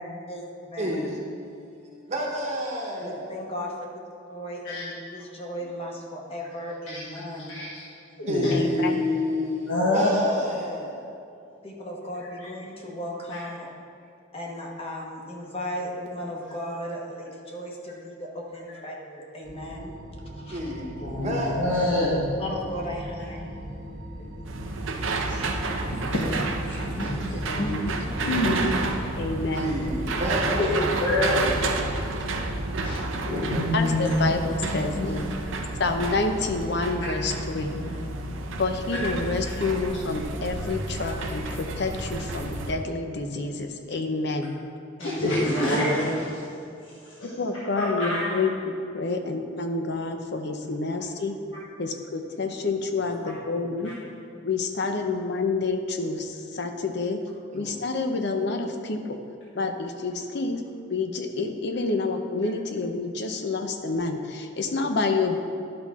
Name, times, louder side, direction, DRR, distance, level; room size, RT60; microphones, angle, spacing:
voice 1, 0.0-1.0 3.0-3.7 4.3-7.6 11.6-13.7 14.3-20.0 20.4-20.6 22.4-23.5 24.2-24.4 30.3-30.8 45.0-45.8, equal, 30° left, -1 dB, 1.1 m, -36 dB
voice 2, 0.8-1.7 2.1-3.3 8.3-11.1 20.5-21.8 29.5-30.7 57.5-57.8, left 1 dB, 35° right, -2 dB, 1.1 m, -29 dB
voice 3, 7.3-7.8 8.2-8.5 9.7-10.2 13.3-13.4 21.0-22.2 25.3-25.4 25.9-26.3 26.6-29.0 30.5-30.7 31.0-32.0 32.8-34.1 34.7-35.1 37.7-37.9 38.2-38.4 45.0-46.2 47.2-47.3 47.7-48.4 53.8-53.9, left 1 dB, 75° left, -8 dB, 1.3 m, -27 dB
voice 4, 8.5-9.0 21.2-21.3 27.0-27.9 28.2-28.5 28.8-28.9 29.2-29.7 33.7-35.2 35.8-37.7 38.6-44.5 47.4-51.3 51.8-53.9 54.4-57.2 57.5-59.0 59.5-60.6 60.9-65.4, left 3 dB, 60° left, 5 dB, 0.7 m, -28 dB
sound 1, 19.4-33.7, equal, 65° right, 1.0 m, -38 dB
sound 2, 24.4-42.7, right 3 dB, 85° right, 0.7 m, -31 dB
11.0 x 5.7 x 3.6 m, 2.5 s
head